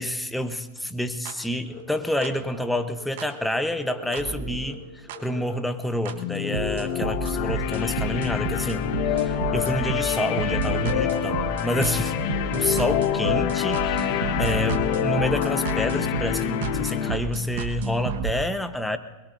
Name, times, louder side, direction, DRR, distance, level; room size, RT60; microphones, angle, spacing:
voice 1, 0.0-12.1 12.5-19.0, left 1 dB, 5° left, 9 dB, 1.0 m, -28 dB
sound 1, 1.3-1.4 2.2-2.3 3.2-3.3 4.1-4.2 5.1-5.2 6.1-6.2 6.5-18.3, right 7 dB, 65° right, 1.3 m, -31 dB
sound 2, 1.7-1.8 2.1-2.6 2.9-3.0 3.3-4.7 5.1-5.6 5.8-6.0 6.3-9.9 10.1-10.3 10.6-11.1 11.4-11.5 11.8-13.0, right 2 dB, 30° right, 4.7 m, -37 dB
sound 3, 6.1-17.2, left 11 dB, 55° left, 1.3 m, -26 dB
22.0 x 22.0 x 2.7 m, 1.2 s
hypercardioid pair, 120°, 0 cm